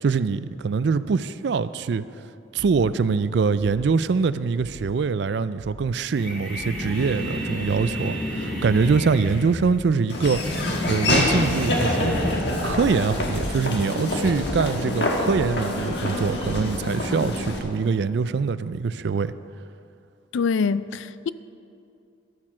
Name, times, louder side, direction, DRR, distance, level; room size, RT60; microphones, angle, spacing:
voice 1, 0.0-2.0 2.5-10.4 10.9-12.2 12.6-19.3, right 5 dB, 55° right, 0.3 m, -24 dB
sound 1, 2.5-2.9 3.6-4.0 4.6-5.0 5.6-6.0 6.5-6.9 7.6-8.0 8.6-9.0 9.6-10.0, right 1 dB, 30° right, 1.6 m, -43 dB
sound 2, 6.1-12.3, equal, 5° left, 2.8 m, -30 dB
Laughter / Walk footsteps, 10.1-17.6, left 1 dB, 55° left, 1.5 m, -26 dB
voice 2, 20.3-21.3, left 5 dB, 70° left, 0.4 m, -24 dB
13.0 x 8.7 x 6.1 m
head